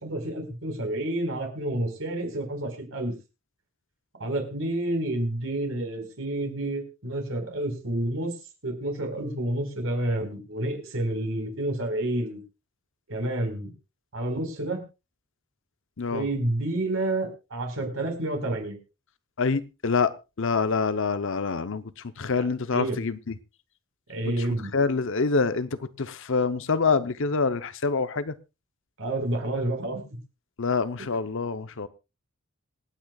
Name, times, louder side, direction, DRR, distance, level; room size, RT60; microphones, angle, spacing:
voice 1, 0.0-3.1 4.2-8.3 8.6-12.4 13.1-13.7 14.1-14.8 16.1-18.7 22.4-22.5 22.7-23.0 24.1-24.7 29.0-30.0, right 1 dB, 70° right, 4.4 m, -29 dB
voice 2, 16.0-16.3 19.4-23.3 24.4-24.5 24.7-28.3 30.6-31.9, left 4 dB, 60° left, 0.7 m, -26 dB
26.5 x 9.2 x 2.3 m
head